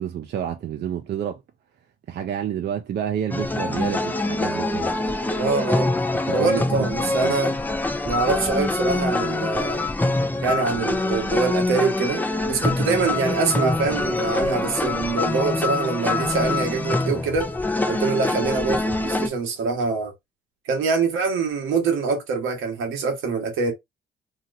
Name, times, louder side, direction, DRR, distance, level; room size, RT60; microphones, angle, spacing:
voice 1, 0.0-1.4 2.1-4.9 6.3-7.3, right 9 dB, 60° right, 0.6 m, -29 dB
sound 1, 3.3-19.3, left 2 dB, 10° left, 0.4 m, -24 dB
voice 2, 5.4-5.9 6.3-7.5 8.0-9.9 10.4-17.5 17.9-20.1 20.6-23.7, right 4 dB, 85° right, 1.2 m, -24 dB
2.9 x 2.9 x 2.5 m
cardioid pair, 90°, 20 cm